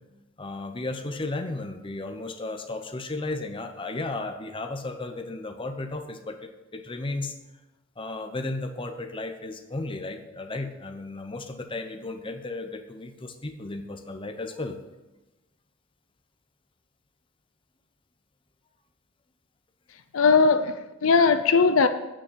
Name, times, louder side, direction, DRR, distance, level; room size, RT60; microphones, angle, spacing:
voice 1, 0.4-7.3 8.0-14.8, left 2 dB, 25° left, 0.9 m, -34 dB
voice 2, 20.1-21.9, left 4 dB, 70° left, 0.5 m, -19 dB
9.1 x 6.3 x 7.5 m
head